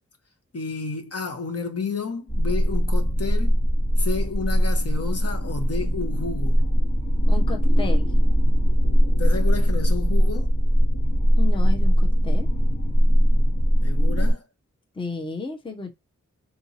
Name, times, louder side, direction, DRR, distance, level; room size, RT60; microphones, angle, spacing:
voice 1, 0.5-3.6 4.0-6.6 9.2-10.6 13.8-14.4, left 4 dB, 50° left, 1.1 m, -31 dB
sound 1, 2.3-14.3, equal, 35° left, 1.3 m, -20 dB
voice 2, 7.3-8.1 11.4-12.5 15.0-15.9, left 4 dB, 15° left, 0.7 m, -32 dB
3.8 x 2.6 x 2.8 m
cardioid pair, 60°, 31 cm